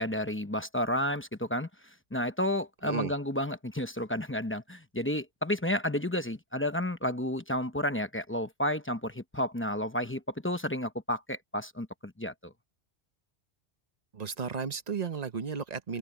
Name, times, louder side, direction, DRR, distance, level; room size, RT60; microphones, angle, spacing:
voice 1, 0.0-12.5, left 1 dB, 10° left, 0.8 m, -31 dB
voice 2, 2.8-3.1 14.1-16.0, right 6 dB, 40° right, 0.9 m, -34 dB
open air
omnidirectional pair, 1.2 m